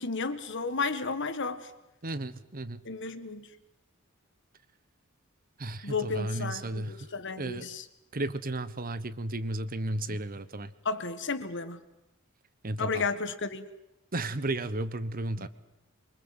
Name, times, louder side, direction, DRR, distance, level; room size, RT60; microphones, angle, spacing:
voice 1, 0.0-1.7 2.9-3.5 5.8-7.9 10.1-10.2 10.9-11.8 12.8-13.7 15.4-15.5, left 4 dB, 60° left, 1.8 m, -33 dB
voice 2, 2.0-2.8 5.6-7.0 7.4-7.7 8.1-10.7 12.6-13.0 14.1-15.5, right 2 dB, 45° right, 1.2 m, -33 dB
25.0 x 24.5 x 8.0 m
head